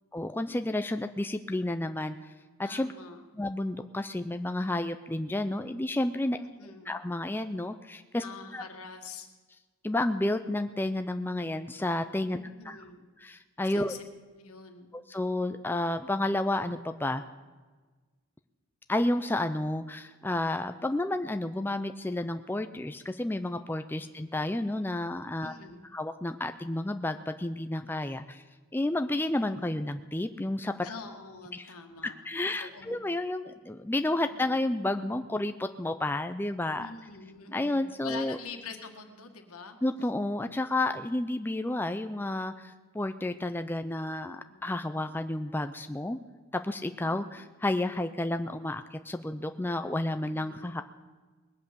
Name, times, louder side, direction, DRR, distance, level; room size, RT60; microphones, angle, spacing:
voice 1, 0.1-2.3 2.6-2.9 3.3-6.4 6.9-8.2 8.5-8.6 9.8-12.4 12.7-12.8 13.2-14.0 14.9-17.2 18.9-25.5 25.9-28.4 28.7-30.7 31.5-31.7 32.2-36.9 37.5-38.4 39.8-46.2 46.5-50.8, left 1 dB, 10° left, 8 dB, 0.4 m, -31 dB
voice 2, 2.6-3.2 6.3-6.9 8.2-9.3 12.3-13.1 13.7-14.0 14.4-14.9 25.4-25.8 30.8-32.2 32.6-33.0 34.3-34.4 36.7-39.8 44.5-44.9 47.0-47.4 50.2-50.7, left 4 dB, 90° left, 5 dB, 1.7 m, -45 dB
20.0 x 8.1 x 6.8 m, 1.3 s
head